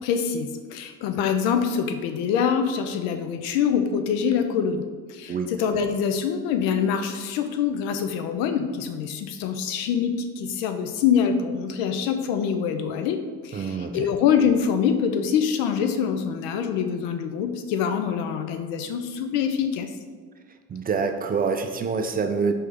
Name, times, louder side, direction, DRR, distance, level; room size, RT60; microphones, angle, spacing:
voice 1, 0.0-4.8 5.1-19.9, left 7 dB, 80° left, 7 dB, 0.6 m, -25 dB
voice 2, 13.5-14.1 20.7-22.5, right 5 dB, 25° right, 7 dB, 0.4 m, -26 dB
4.5 x 3.2 x 3.5 m, 1.5 s
supercardioid pair, 75°, 34 cm